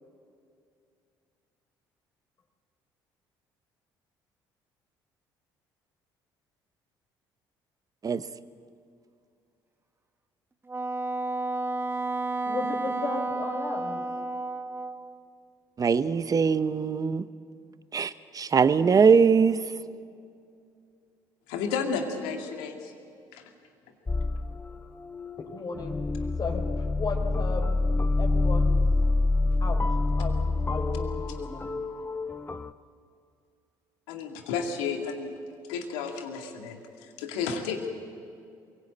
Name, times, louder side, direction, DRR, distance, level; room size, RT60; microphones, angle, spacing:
Wind instrument woodwind instrument, 10.7-15.2, right 2 dB, 20° right, 1.5 m, -31 dB
voice 1, 12.4-14.0 25.4-27.8 28.2-28.8 29.6-29.8 30.2-31.7, left 4 dB, 40° left, 3 dB, 4.3 m, -35 dB
voice 2, 15.8-17.3 17.9-19.6, right 5 dB, 35° right, 14 dB, 0.9 m, -21 dB
voice 3, 21.5-22.9 23.3-23.5 34.1-35.3 35.7-37.9, left 5 dB, 80° left, 4 dB, 2.3 m, -32 dB
sound 1, 24.1-32.7, left 2 dB, 20° left, 0.9 m, -27 dB
22.5 x 17.0 x 8.7 m, 2.4 s
hypercardioid pair, 60°, 10 cm